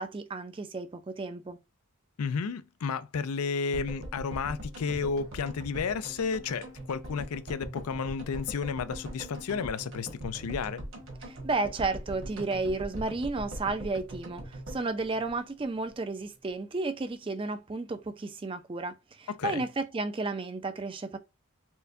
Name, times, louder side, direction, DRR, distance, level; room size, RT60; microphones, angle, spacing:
voice 1, 0.0-1.6 11.2-21.2, right 3 dB, 25° right, 0.3 m, -33 dB
voice 2, 2.2-10.8 19.3-19.6, left 5 dB, 90° left, 0.4 m, -32 dB
sound 1, 3.7-16.0 16.2-16.3 16.5-16.6, right 1 dB, 60° right, 1.4 m, -41 dB
4.4 x 2.2 x 2.6 m
head